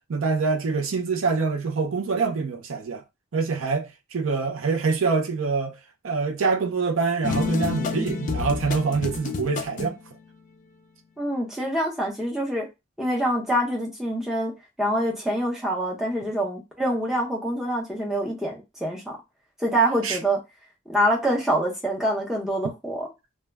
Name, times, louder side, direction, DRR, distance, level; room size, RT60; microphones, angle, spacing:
voice 1, 0.1-3.0 3.3-5.8 6.0-10.0 20.0-20.2, right 4 dB, 85° right, 0.5 m, -25 dB
sound 1, 7.2-10.0, left 5 dB, 40° left, 0.3 m, -29 dB
voice 2, 11.2-12.7 13.0-14.5 14.8-19.2 19.6-20.4 20.9-23.1, right 1 dB, ahead, 0.6 m, -25 dB
2.2 x 2.1 x 3.3 m
head